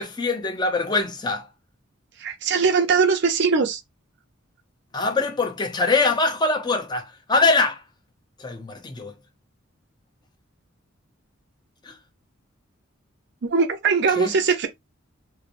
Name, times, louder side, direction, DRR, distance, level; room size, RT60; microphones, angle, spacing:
voice 1, 0.0-1.5 4.9-7.8 8.4-9.1 11.8-12.0 14.1-14.3, left 3 dB, 20° left, 0.5 m, -23 dB
voice 2, 2.2-3.8 13.4-14.7, right 5 dB, 55° right, 0.5 m, -21 dB
3.0 x 2.0 x 2.5 m
head